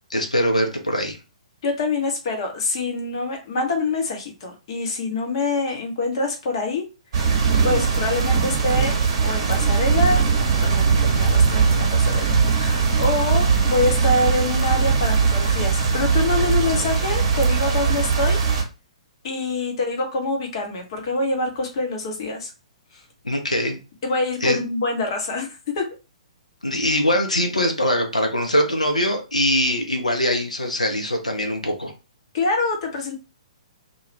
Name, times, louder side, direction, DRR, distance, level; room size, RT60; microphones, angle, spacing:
voice 1, 0.1-1.2 23.2-23.8 24.4-24.6 26.6-31.9, equal, 85° left, 4 dB, 0.7 m, -22 dB
voice 2, 1.6-6.9 7.1-7.3 7.6-9.0 9.2-10.2 10.5-18.4 19.2-22.5 22.9-23.0 24.0-26.0 32.3-33.1, left 3 dB, 45° left, 3 dB, 0.9 m, -25 dB
sound 1, 7.1-18.6, right 5 dB, 45° right, 0.8 m, -20 dB
2.3 x 2.3 x 3.0 m, 0.30 s
figure-of-eight pair, 120°, 4 cm